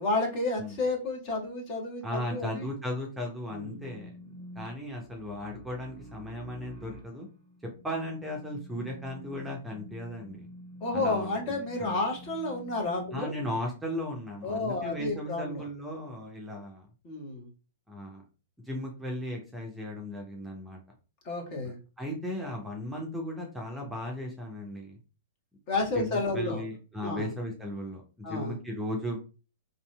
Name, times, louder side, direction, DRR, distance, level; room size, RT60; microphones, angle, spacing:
voice 1, 0.0-2.7 3.5-3.8 10.8-13.3 14.4-15.6 17.0-17.5 21.2-21.8 25.7-26.6 27.0-27.3 28.2-28.5, left 2 dB, 40° left, 1 dB, 1.1 m, -31 dB
voice 2, 2.0-4.1 4.6-7.3 7.8-10.5 10.9-12.0 13.1-16.9 17.9-18.2 18.6-20.8 22.0-25.0 25.9-29.2, left 1 dB, 5° right, -1 dB, 0.6 m, -36 dB
sound 1, 3.6-13.2, equal, 20° left, 1.5 m, -48 dB
2.7 x 2.6 x 2.2 m, 0.34 s
figure-of-eight pair, 105°, 0 cm